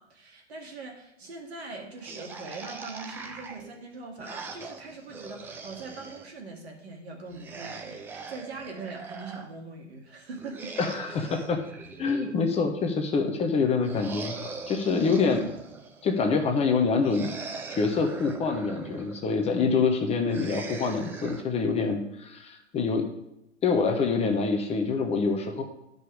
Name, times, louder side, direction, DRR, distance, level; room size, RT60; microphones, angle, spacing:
voice 1, 0.0-10.8, right 3 dB, 65° right, 1 dB, 2.3 m, -42 dB
sound 1, 2.0-6.3 7.3-9.5 10.3-12.7 13.8-16.1 17.0-19.2 20.3-21.4, right 4 dB, 5° right, 0.4 m, -41 dB
voice 2, 10.8-11.6 12.0-14.4 14.7-15.5 16.0-17.3 17.7-23.0 23.6-25.6, left 4 dB, 20° left, 4 dB, 0.9 m, -26 dB
11.5 x 5.3 x 4.9 m, 0.84 s
figure-of-eight pair, 105°, 35 cm